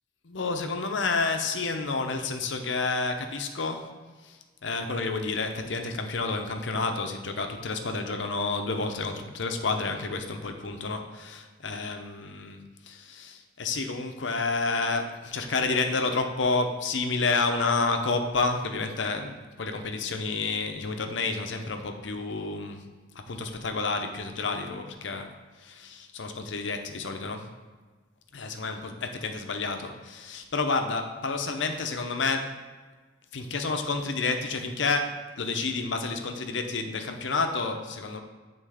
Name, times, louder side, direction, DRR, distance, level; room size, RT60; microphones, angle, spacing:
voice 1, 0.2-3.9 4.2-4.3 4.6-22.9 23.3-25.3 25.6-27.5 28.3-32.6 33.3-38.2, left 3 dB, 75° left, 5 dB, 0.7 m, -30 dB
7.8 x 3.9 x 4.9 m, 1.3 s
head